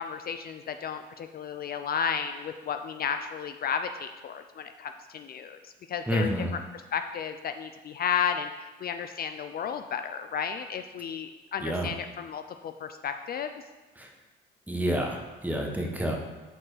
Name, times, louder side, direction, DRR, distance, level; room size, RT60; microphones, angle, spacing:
voice 1, 0.0-6.6 6.9-13.5, left 7 dB, 50° left, 8 dB, 0.4 m, -33 dB
voice 2, 6.1-6.5 11.6-11.9 14.0-14.1 14.7-16.2, equal, 10° right, 2 dB, 1.0 m, -29 dB
6.3 x 4.3 x 4.9 m, 1.2 s
cardioid pair, 90°, 20 cm